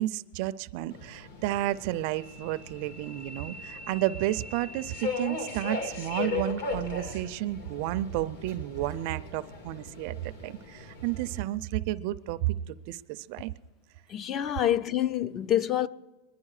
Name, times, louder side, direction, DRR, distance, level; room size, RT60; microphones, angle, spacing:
voice 1, 0.0-13.5, right 15 dB, 40° right, 0.4 m, -32 dB
Subway metro underground, 0.9-11.4, left 3 dB, 60° left, 2.8 m, -38 dB
voice 2, 14.1-15.9, left 11 dB, 25° left, 0.4 m, -27 dB
23.0 x 11.0 x 4.8 m
supercardioid pair, 170°, 0 cm